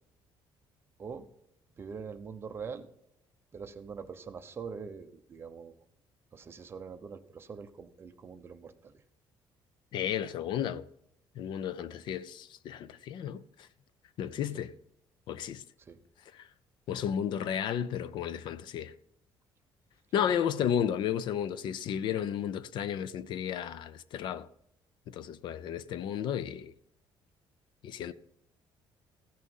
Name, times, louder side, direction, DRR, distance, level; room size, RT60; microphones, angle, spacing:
voice 1, 1.8-2.9 3.5-5.8 6.3-9.0 14.5-14.7 15.8-16.0 20.1-20.4, right 5 dB, 25° right, 0.8 m, -43 dB
voice 2, 9.9-10.9 11.3-13.7 14.2-14.7 15.3-15.6 16.3-16.5 16.9-18.9 20.1-24.5 25.1-26.7 27.8-28.1, left 9 dB, 60° left, 0.6 m, -33 dB
15.5 x 6.3 x 5.5 m
cardioid pair, 170°, 9 cm